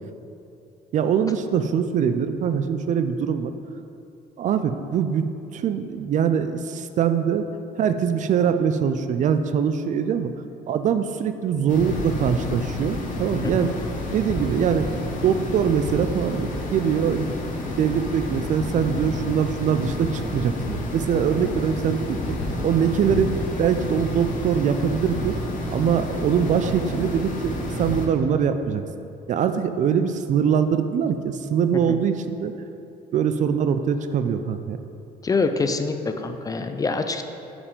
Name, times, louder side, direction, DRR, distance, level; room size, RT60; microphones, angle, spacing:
voice 1, 0.9-3.5 4.4-5.3 5.5-7.5 7.8-10.3 10.7-13.8 14.1-14.9 15.2-17.3 17.8-22.4 22.6-25.3 25.7-28.8 29.3-32.5 33.1-34.8, right 7 dB, 45° right, 9 dB, 0.4 m, -23 dB
sound 1, 11.7-28.1, left 2 dB, 50° left, 1.0 m, -30 dB
voice 2, 35.2-37.2, left 4 dB, 20° left, 7 dB, 0.3 m, -25 dB
4.9 x 4.9 x 5.3 m, 2.8 s
cardioid pair, 110°, 17 cm